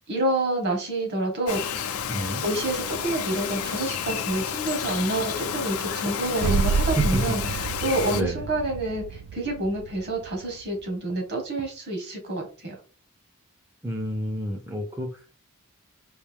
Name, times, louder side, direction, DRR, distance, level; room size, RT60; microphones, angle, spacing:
voice 1, 0.1-1.9 2.4-7.4 7.8-12.8, right 1 dB, 50° right, 2 dB, 1.4 m, -28 dB
Bird vocalization bird call bird song, 1.5-8.2, left 8 dB, 75° left, 0.5 m, -31 dB
voice 2, 2.1-2.4 7.0-7.5 8.1-8.4 13.8-15.3, right 1 dB, 10° right, 1 dB, 0.5 m, -29 dB
sound 1, 6.3-10.6, right 5 dB, 85° right, 0.3 m, -29 dB
4.6 x 2.6 x 3.4 m, 0.35 s
head